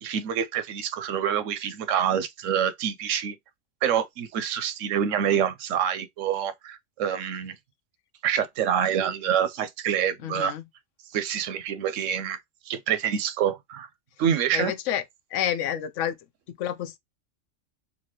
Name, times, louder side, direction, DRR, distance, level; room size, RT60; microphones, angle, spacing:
voice 1, 0.0-3.4 3.8-7.6 8.2-10.5 11.1-12.4 12.7-13.9 14.2-14.7, right 9 dB, 85° right, 1.0 m, -26 dB
voice 2, 10.2-10.6 14.5-15.0 15.3-16.2 16.6-17.0, left 10 dB, 80° left, 1.0 m, -28 dB
4.0 x 2.8 x 2.9 m
omnidirectional pair, 1.3 m